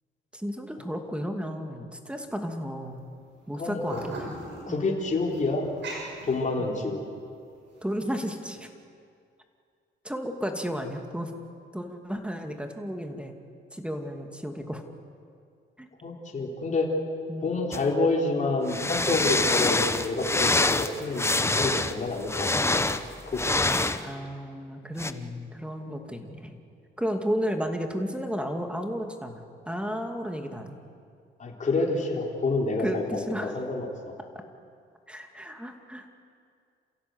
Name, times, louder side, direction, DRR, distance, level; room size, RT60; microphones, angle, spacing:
voice 1, 0.3-3.1 3.5-4.4 4.7-5.0 6.6-7.0 7.8-8.7 10.0-11.3 11.7-13.3 13.7-14.8 15.8-15.9 17.3-17.4 24.0-26.6 27.0-30.8 32.8-33.6 34.3-34.4 35.1-36.1, equal, 5° right, 4 dB, 2.5 m, -33 dB
sound 1, 2.8-3.0 3.3-7.0 7.5-8.0, right 2 dB, 65° right, 7.4 m, -40 dB
voice 2, 3.6-4.1 4.7-5.7 6.2-7.0 16.0-16.9 17.4-22.8 23.3-23.8 31.4-33.9, left 3 dB, 40° left, -1 dB, 4.0 m, -28 dB
sound 2, 17.7-17.8 18.7-24.0 25.0-25.1, left 2 dB, 15° left, 1.0 m, -25 dB
28.5 x 16.0 x 8.1 m, 2.3 s
cardioid pair, 90°, 20 cm